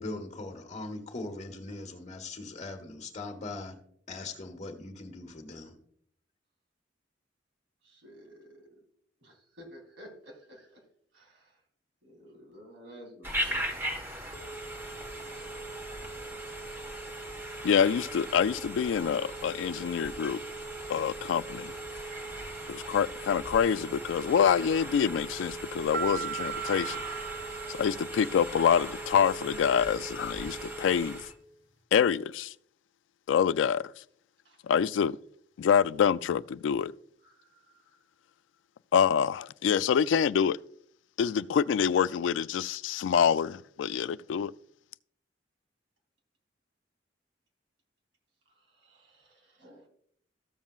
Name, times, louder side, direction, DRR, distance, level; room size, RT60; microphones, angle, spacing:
voice 1, 0.0-3.8 4.1-5.8, left 2 dB, 40° left, 1.4 m, -40 dB
voice 2, 7.8-8.7 9.2-10.8 11.1-11.6 12.0-13.7 27.5-27.9 29.5-29.7 34.4-34.6 37.2-38.0 48.5-49.9, equal, 90° right, 3.3 m, -53 dB
Telephone, 13.2-31.3, right 1 dB, 15° right, 1.3 m, -38 dB
voice 3, 17.6-20.4 20.9-21.7 22.7-27.1 27.8-31.2 31.9-32.5 33.3-33.8 34.7-35.2 35.6-36.9 38.9-40.6 41.2-44.5, left 7 dB, 85° left, 0.3 m, -26 dB
sound 1, 25.9-28.6, right 9 dB, 70° right, 1.3 m, -38 dB
14.0 x 7.3 x 2.4 m
head